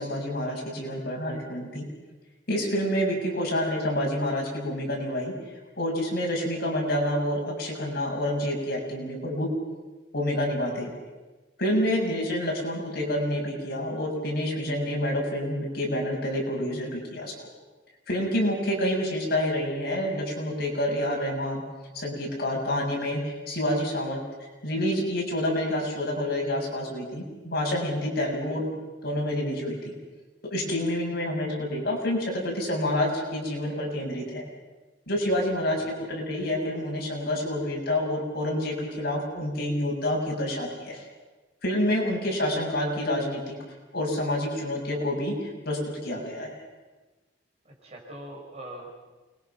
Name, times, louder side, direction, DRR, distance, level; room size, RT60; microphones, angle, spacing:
voice 1, 0.0-1.9 2.5-5.3 5.8-9.5 10.1-10.9 11.6-17.3 18.1-21.6 21.9-28.7 29.0-29.9 30.4-34.4 35.1-41.0 41.6-43.6 43.9-46.6, left 1 dB, 60° left, -1 dB, 6.9 m, -28 dB
voice 2, 3.1-3.4 28.5-28.6 35.7-36.0 47.6-48.9, right 1 dB, 35° right, -2 dB, 6.1 m, -44 dB
29.0 x 22.0 x 6.0 m, 1.2 s
head